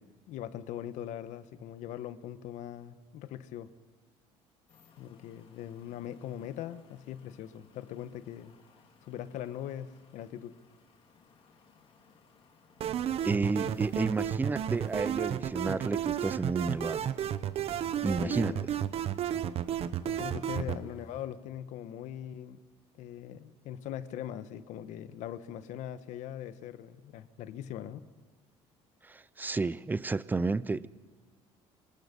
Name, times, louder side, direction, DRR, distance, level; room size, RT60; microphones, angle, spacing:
voice 1, 0.3-3.7 5.0-8.6 9.0-10.5 13.6-13.7 18.2-18.7 20.1-22.6 23.0-28.1, left 10 dB, 70° left, 1.3 m, -41 dB
sound 1, 4.7-21.3, left 5 dB, 45° left, 3.5 m, -60 dB
sound 2, 12.8-20.8, right 10 dB, 50° right, 1.0 m, -32 dB
voice 2, 13.2-17.1 18.0-18.7 29.0-30.9, right 3 dB, 15° right, 0.6 m, -31 dB
26.0 x 26.0 x 5.4 m
cardioid pair, 125°, 13 cm